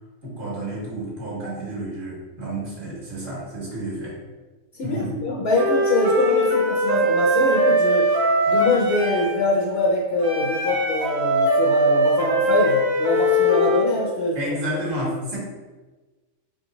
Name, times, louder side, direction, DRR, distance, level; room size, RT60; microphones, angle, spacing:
voice 1, 0.2-4.2 4.8-5.1 14.3-15.4, right 1 dB, 75° right, -5 dB, 1.7 m, -30 dB
voice 2, 4.8-8.0 8.5-14.4, left 2 dB, 60° left, -3 dB, 0.8 m, -23 dB
Wind instrument woodwind instrument, 5.5-9.4 10.2-13.9, equal, 50° right, 1.1 m, -21 dB
3.8 x 3.1 x 3.9 m, 1.3 s
omnidirectional pair, 1.3 m